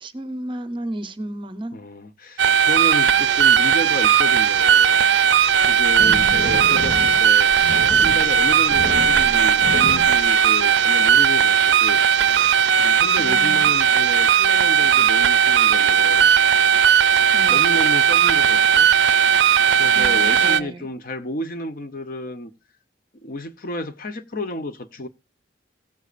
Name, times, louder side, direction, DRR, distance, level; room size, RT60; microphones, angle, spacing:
voice 1, 0.0-1.8 13.2-13.7 17.3-17.8 19.9-20.9, right 1 dB, 30° right, 0.8 m, -33 dB
voice 2, 1.7-5.0 5.6-7.5 8.0-12.1 12.8-16.3 17.5-18.9 19.8-22.5 23.2-25.1, left 1 dB, 50° left, 0.8 m, -31 dB
sound 1, 2.4-20.6, right 8 dB, 70° right, 0.4 m, -17 dB
sound 2, 5.4-11.0, left 1 dB, 70° left, 2.4 m, -31 dB
16.5 x 8.2 x 2.5 m
head